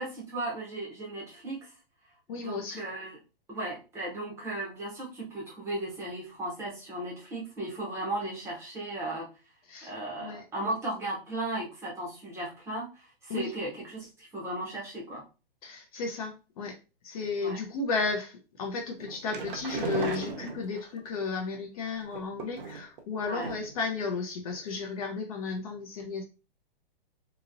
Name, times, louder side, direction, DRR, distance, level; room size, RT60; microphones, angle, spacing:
voice 1, 0.0-1.7 2.3-3.2 3.5-9.3 9.8-15.2 17.4-17.6 23.2-23.5, right 1 dB, 10° right, -3 dB, 0.7 m, -36 dB
voice 2, 2.3-2.8 9.7-9.9 10.2-10.4 13.3-13.5 15.6-16.8 17.0-26.2, left 4 dB, 40° left, 3 dB, 0.6 m, -34 dB
sound 1, 19.0-21.1 22.1-23.0 23.4-23.8 24.1-24.2 24.6-24.7, right 5 dB, 60° right, 0.8 m, -36 dB
2.9 x 2.7 x 2.5 m, 0.32 s
hypercardioid pair, 150°, 30 cm